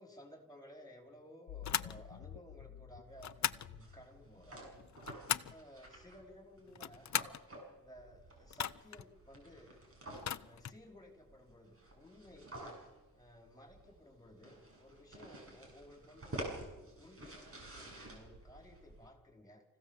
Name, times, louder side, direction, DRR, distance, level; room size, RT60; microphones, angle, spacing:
voice 1, 0.0-4.7 5.5-7.2 7.8-9.8 10.4-12.6 13.1-19.6, equal, 10° left, 2 dB, 4.7 m, -57 dB
sound 1, 1.5-5.0, left 10 dB, 90° left, 0.9 m, -52 dB
sound 2, 1.6-2.0 3.2-3.7 4.8-5.6 6.7-7.4 8.5-9.0 10.1-10.8, left 9 dB, 50° left, 0.7 m, -38 dB
sound 3, 3.1-19.1, right 1 dB, 40° right, 6.5 m, -51 dB
27.0 x 16.5 x 7.4 m, 1.0 s
wide cardioid pair, 115°, 36 cm